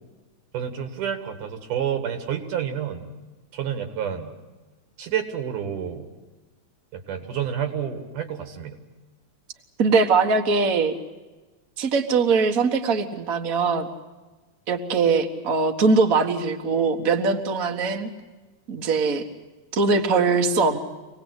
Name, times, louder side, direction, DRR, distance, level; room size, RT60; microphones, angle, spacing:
voice 1, 0.5-3.1 3.5-4.3 5.0-6.1 6.9-8.8, right 9 dB, 85° right, 6 dB, 3.5 m, -29 dB
voice 2, 9.8-10.9 11.8-13.9 14.7-18.1 18.7-19.2 19.7-20.8, right 4 dB, 40° right, 5 dB, 1.3 m, -21 dB
26.5 x 18.5 x 8.2 m, 1.2 s
omnidirectional pair, 3.5 m